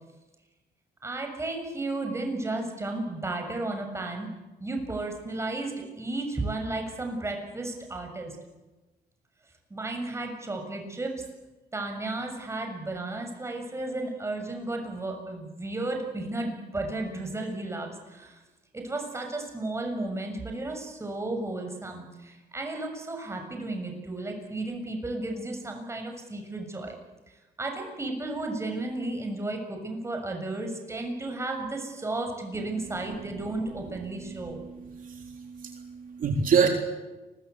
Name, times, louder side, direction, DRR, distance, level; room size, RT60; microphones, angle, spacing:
voice 1, 1.0-4.3 4.6-8.3 9.7-11.2 11.7-18.4 18.7-27.0 27.6-34.6, right 2 dB, 15° right, 3 dB, 6.8 m, -33 dB
voice 2, 35.0-36.7, right 6 dB, 55° right, 3 dB, 3.6 m, -26 dB
29.5 x 22.5 x 8.3 m, 1.1 s
cardioid pair, 125°, 17 cm